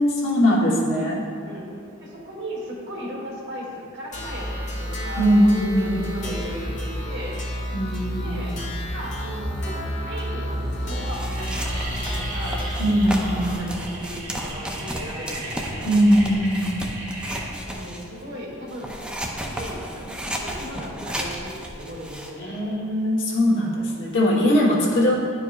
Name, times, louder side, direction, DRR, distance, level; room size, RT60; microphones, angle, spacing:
voice 1, 0.0-1.2 5.2-6.0 7.7-8.6 12.8-13.6 15.8-16.8 22.4-25.1, equal, 60° left, -4 dB, 1.2 m, -20 dB
voice 2, 2.0-7.4 8.2-8.6 8.9-12.6 13.0-15.9 17.5-18.9 19.4-22.8, equal, 55° right, -4 dB, 1.3 m, -37 dB
sound 1, 4.1-13.6, equal, 35° left, 1.2 m, -30 dB
sound 2, 10.0-10.1 10.3-10.7 10.9-19.9, right 1 dB, 90° right, 1.3 m, -37 dB
sound 3, 10.7-18.2 18.7-22.3, equal, 5° right, 0.4 m, -34 dB
10.5 x 4.6 x 2.4 m, 2.4 s
head